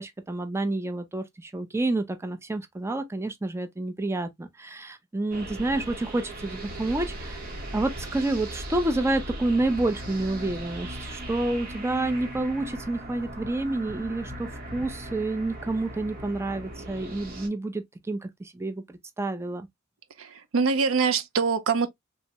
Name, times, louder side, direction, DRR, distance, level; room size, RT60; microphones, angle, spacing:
voice 1, 0.0-7.4 7.7-18.8 19.2-19.7, right 2 dB, 15° right, 0.4 m, -29 dB
sound 1, 5.3-17.5, right 1 dB, 45° right, 0.8 m, -38 dB
voice 2, 20.2-21.9, right 5 dB, 85° right, 0.5 m, -24 dB
3.5 x 2.1 x 2.7 m
head